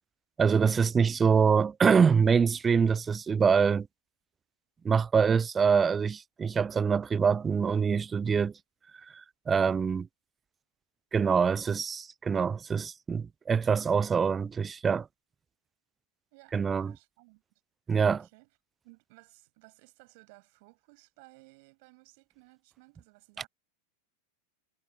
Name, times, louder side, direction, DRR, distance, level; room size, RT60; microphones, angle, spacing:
voice 1, 0.4-3.9 4.8-8.5 9.5-10.0 11.1-15.1 16.5-16.9 17.9-18.2, right 6 dB, 20° right, 0.4 m, -25 dB
voice 2, 16.3-17.4 18.1-18.5 18.8-23.5, right 28 dB, 45° right, 7.6 m, -58 dB
figure-of-eight pair, 90°, 0 cm